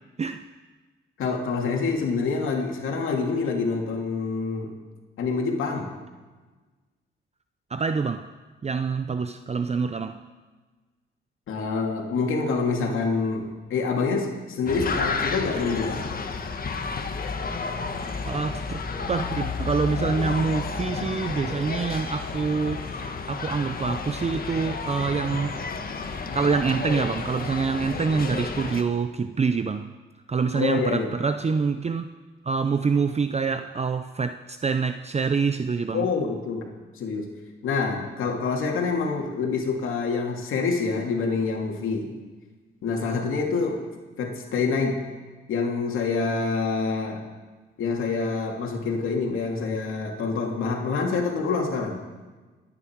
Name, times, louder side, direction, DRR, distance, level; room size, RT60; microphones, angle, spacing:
voice 1, 1.2-4.7 5.2-5.9 11.5-16.1 30.5-31.1 35.9-36.6 37.0-37.3 37.6-42.1 42.8-43.8 44.2-45.0 45.5-47.2 47.8-52.0, left 4 dB, 80° left, 1 dB, 2.7 m, -26 dB
voice 2, 7.7-8.2 8.6-10.2 18.3-18.8 19.1-22.9 23.3-25.6 26.3-29.9 30.3-32.1 32.4-36.1, right 5 dB, 30° right, 9 dB, 0.6 m, -26 dB
sound 1, 14.7-28.8, left 4 dB, 45° left, 1.5 m, -31 dB
27.5 x 9.9 x 4.7 m, 1.3 s
cardioid pair, 75°, 21 cm